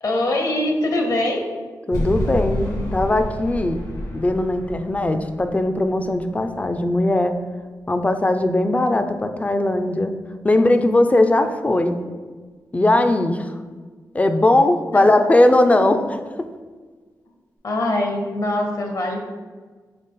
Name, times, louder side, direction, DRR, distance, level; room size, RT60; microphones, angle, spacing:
voice 1, 0.0-1.4 17.6-19.2, left 1 dB, 60° left, 2 dB, 0.9 m, -22 dB
sound 1, 1.9-7.1, equal, 80° left, 1.4 m, -30 dB
voice 2, 1.9-3.8 4.1-7.3 7.9-10.1 10.4-12.0 12.7-13.6 14.1-16.2, left 1 dB, 20° left, 7 dB, 0.4 m, -19 dB
4.1 x 3.2 x 3.8 m, 1.5 s
cardioid pair, 75°, 7 cm